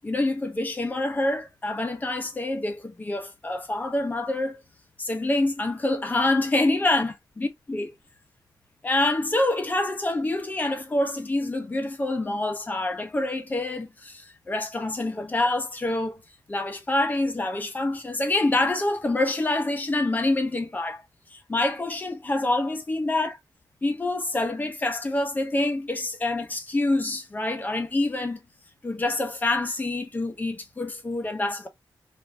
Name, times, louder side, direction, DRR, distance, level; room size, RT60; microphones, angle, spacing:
voice 1, 0.0-4.6 5.0-7.9 8.8-16.2 16.5-21.0 21.3-23.4 23.8-28.4 28.8-31.7, left 2 dB, 20° left, 0.7 m, -26 dB
2.6 x 2.5 x 3.1 m
wide cardioid pair, 170°, 8 cm